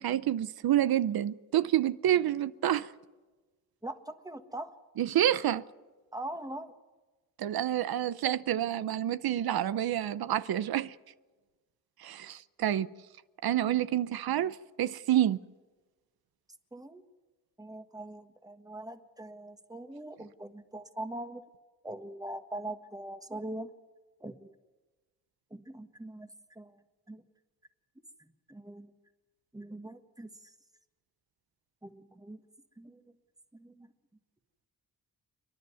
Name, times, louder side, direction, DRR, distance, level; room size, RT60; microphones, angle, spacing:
voice 1, 0.0-2.9 5.0-5.6 7.4-10.9 12.0-12.9 13.4-15.4, right 12 dB, 80° right, 0.7 m, -28 dB
voice 2, 3.8-4.8 6.1-6.7 16.7-17.0 17.6-21.4 21.8-23.7 24.2-24.5 25.5-26.8 27.1-27.2 28.2-28.9 29.5-30.5 31.8-32.4 32.8-33.0 33.5-33.9, right 1 dB, 10° right, 1.5 m, -42 dB
29.0 x 10.5 x 9.5 m
cardioid pair, 85°, 36 cm